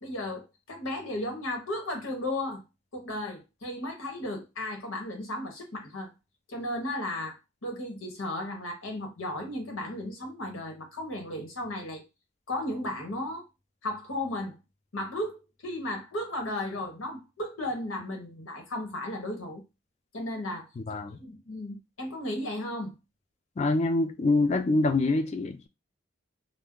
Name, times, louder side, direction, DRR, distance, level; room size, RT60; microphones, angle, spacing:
voice 1, 0.0-2.6 2.9-6.1 6.5-12.0 12.5-13.5 13.8-14.6 14.9-19.6 20.1-20.7 21.1-23.0, left 1 dB, 90° left, 1.1 m, -35 dB
voice 2, 20.8-21.2 23.6-25.7, left 2 dB, 35° left, 0.3 m, -25 dB
2.5 x 2.0 x 3.6 m
head